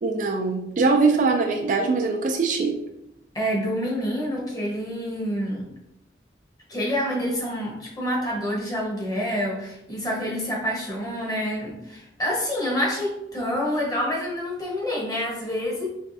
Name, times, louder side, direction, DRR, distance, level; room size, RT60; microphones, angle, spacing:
voice 1, 0.0-2.7, right 4 dB, 45° right, 3 dB, 0.4 m, -22 dB
voice 2, 3.3-5.7 6.7-15.9, equal, 20° left, -4 dB, 1.1 m, -27 dB
4.6 x 3.2 x 2.6 m, 0.84 s
head